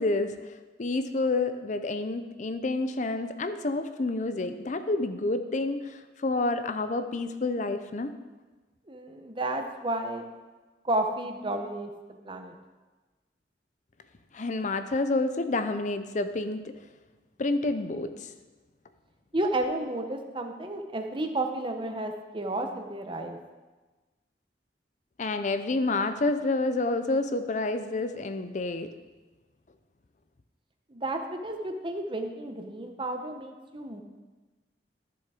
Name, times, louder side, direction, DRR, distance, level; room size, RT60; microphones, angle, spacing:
voice 1, 0.0-8.1 14.3-16.7 17.4-18.3 25.2-28.9, left 2 dB, 45° left, 9 dB, 0.6 m, -29 dB
voice 2, 8.9-10.2 10.8-12.5 19.3-23.4 30.9-34.0, right 1 dB, 30° right, 5 dB, 0.9 m, -32 dB
13.5 x 7.1 x 4.9 m, 1.3 s
head